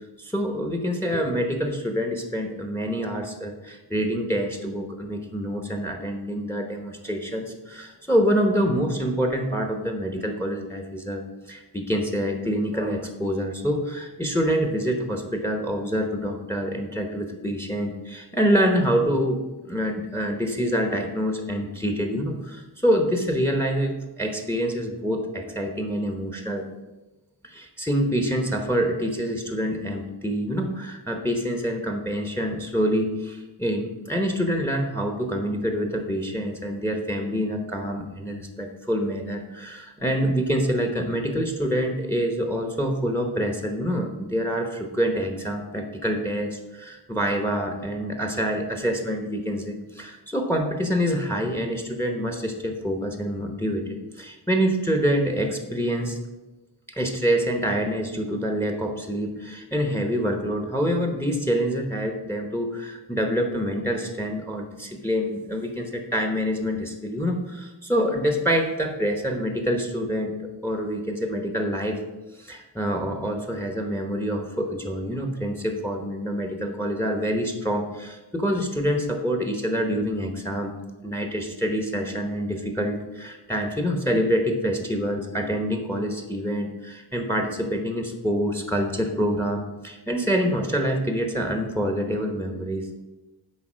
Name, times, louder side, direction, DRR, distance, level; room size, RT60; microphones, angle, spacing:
voice 1, 0.2-19.4 19.7-26.7 27.4-56.2 56.9-70.3 70.6-72.0 72.4-80.7 81.0-92.9, equal, 5° left, 4 dB, 0.9 m, -26 dB
8.4 x 4.1 x 6.2 m, 1.1 s
wide cardioid pair, 75°, 43 cm